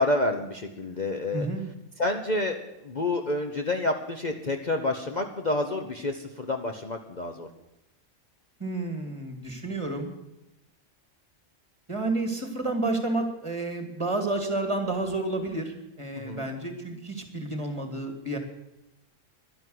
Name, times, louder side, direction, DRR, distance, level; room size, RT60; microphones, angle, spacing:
voice 1, 0.0-1.5 2.0-7.5 16.2-16.5, left 2 dB, 35° left, 4 dB, 1.1 m, -29 dB
voice 2, 1.3-1.7 8.6-10.1 11.9-18.4, right 2 dB, 25° right, 6 dB, 2.4 m, -30 dB
12.0 x 10.5 x 7.8 m, 0.94 s
omnidirectional pair, 1.3 m